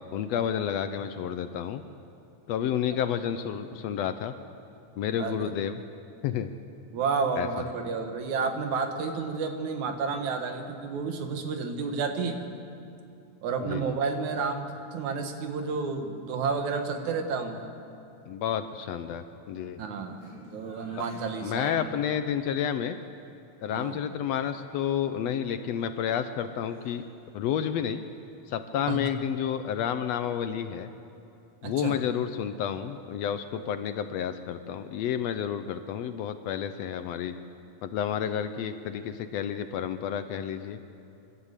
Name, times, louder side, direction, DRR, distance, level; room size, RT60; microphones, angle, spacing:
voice 1, 0.0-1.8 2.5-4.3 5.0-5.8 6.2-6.5 7.4-7.6 13.6-13.8 18.3-19.8 21.4-23.0 23.6-27.0 27.3-28.0 28.5-30.9 31.6-37.4 37.8-40.8, left 9 dB, 75° left, 10 dB, 1.7 m, -30 dB
voice 2, 6.9-12.4 13.4-17.7 19.8-21.8 23.7-24.0 28.9-29.0 31.6-32.0, right 5 dB, 75° right, 5 dB, 2.8 m, -31 dB
Laughter, 20.1-22.8 25.6-26.4 26.7-27.2, equal, 60° right, 5.5 m, -51 dB
26.0 x 12.5 x 8.2 m, 2.8 s
omnidirectional pair, 3.4 m